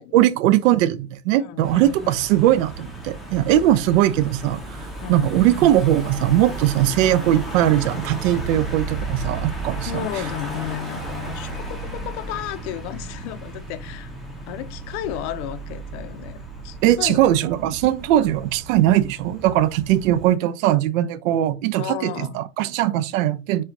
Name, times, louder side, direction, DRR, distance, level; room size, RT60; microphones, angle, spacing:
voice 1, 0.0-4.8 5.1-9.9 16.8-23.6, right 13 dB, 60° right, 0.5 m, -20 dB
voice 2, 1.4-2.2 5.0-5.3 9.9-14.1 14.5-17.2 21.8-22.4, left 13 dB, 50° left, 0.6 m, -33 dB
Car passing by / Engine, 1.6-20.3, right 2 dB, ahead, 0.6 m, -34 dB
4.3 x 2.4 x 3.7 m
supercardioid pair, 130°, 45 cm